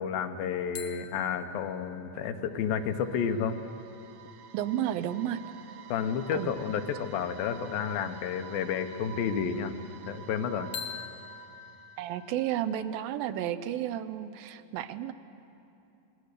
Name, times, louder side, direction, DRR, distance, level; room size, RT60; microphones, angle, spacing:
voice 1, 0.0-3.6 5.9-9.8 10.1-10.7, left 7 dB, 90° left, 7 dB, 2.8 m, -31 dB
sound 1, 0.7-4.3 10.7-13.5, left 8 dB, 65° left, 1.7 m, -46 dB
sound 2, 2.5-12.6, right 9 dB, 70° right, 1.9 m, -49 dB
voice 2, 4.5-5.4 6.3-6.5 12.0-15.1, right 11 dB, 85° right, 12 dB, 2.5 m, -32 dB
27.0 x 20.0 x 6.7 m, 2.8 s
omnidirectional pair, 4.1 m